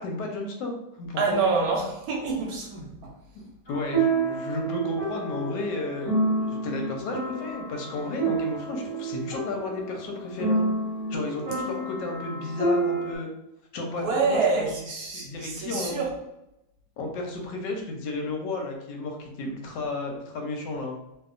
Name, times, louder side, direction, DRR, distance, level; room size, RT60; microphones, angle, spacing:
voice 1, 0.0-1.4 3.3-10.7 11.1-13.3 13.7-14.7 15.1-16.0 17.0-21.0, left 2 dB, 90° left, 2 dB, 1.2 m, -33 dB
voice 2, 1.2-3.1 13.9-16.1, right 4 dB, 70° right, -1 dB, 0.9 m, -27 dB
sound 1, 3.7-13.2, right 2 dB, 45° right, 0.7 m, -29 dB
2.7 x 2.3 x 2.4 m, 0.88 s
omnidirectional pair, 1.8 m